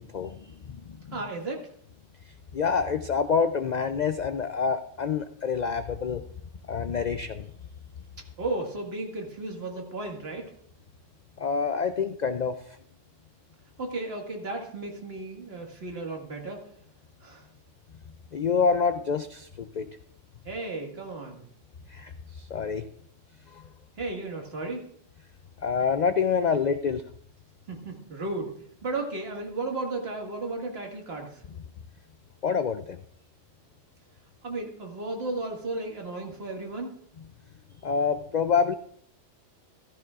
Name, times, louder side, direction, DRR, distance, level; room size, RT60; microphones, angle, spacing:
voice 1, 0.0-1.2 2.5-6.2 6.7-7.5 11.4-12.8 18.3-19.9 21.9-22.9 23.5-23.6 25.6-27.0 32.4-33.0 37.8-38.7, left 6 dB, 75° left, 9 dB, 0.4 m, -27 dB
voice 2, 1.1-1.7 8.4-10.5 13.8-16.6 17.2-17.5 20.4-21.4 24.0-24.9 27.7-28.5 28.8-31.4 34.4-36.9, right 2 dB, 50° right, 1 dB, 2.0 m, -34 dB
15.0 x 13.5 x 2.4 m, 0.65 s
omnidirectional pair, 1.3 m